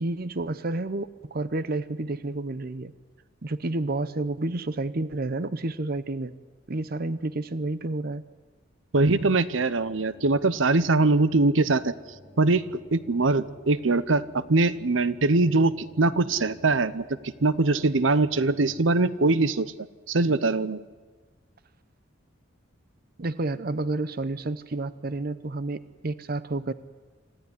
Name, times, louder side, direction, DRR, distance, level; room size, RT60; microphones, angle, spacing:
voice 1, 0.0-2.9 3.4-6.3 6.7-8.2 23.2-26.7, right 2 dB, 50° right, 15 dB, 0.7 m, -30 dB
voice 2, 8.9-11.9 12.4-12.6 12.9-17.0 17.4-19.7 20.1-20.8, right 3 dB, 85° right, 16 dB, 0.8 m, -22 dB
sound 1, 9.4-18.7, left 1 dB, 5° right, 4.4 m, -51 dB
26.0 x 14.5 x 9.9 m, 1.4 s
head